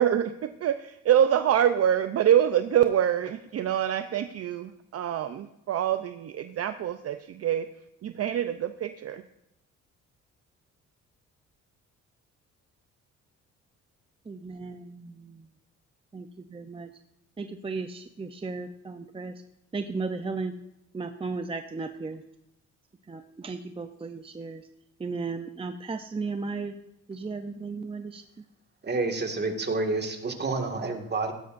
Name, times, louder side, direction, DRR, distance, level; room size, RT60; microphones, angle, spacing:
voice 1, 0.0-7.7 8.0-9.2, right 10 dB, 55° right, 9 dB, 0.6 m, -25 dB
voice 2, 14.3-15.1 16.1-16.9 17.4-19.3 19.7-20.5 20.9-22.2 23.1-24.6 25.0-26.7 27.1-28.2, right 4 dB, 20° right, 7 dB, 0.6 m, -35 dB
voice 3, 28.8-31.3, right 3 dB, 35° right, 4 dB, 2.0 m, -29 dB
16.0 x 12.0 x 2.6 m, 0.88 s
cardioid pair, 90°, 30 cm